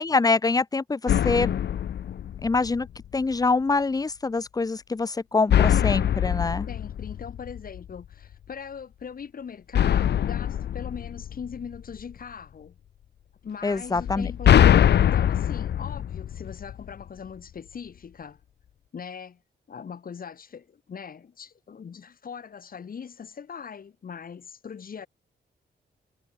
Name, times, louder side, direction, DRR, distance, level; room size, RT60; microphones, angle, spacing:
voice 1, 0.0-1.6 2.4-2.9 3.1-6.7 13.6-14.3, left 3 dB, 20° left, 0.7 m, -25 dB
sound 1, 1.1-3.0 5.5-7.9 9.7-12.0 14.0-17.0, left 10 dB, 75° left, 0.8 m, -23 dB
voice 2, 6.6-12.8 13.4-18.4 18.9-19.4 19.7-25.1, left 6 dB, 55° left, 2.9 m, -40 dB
cardioid pair, 105°, 18 cm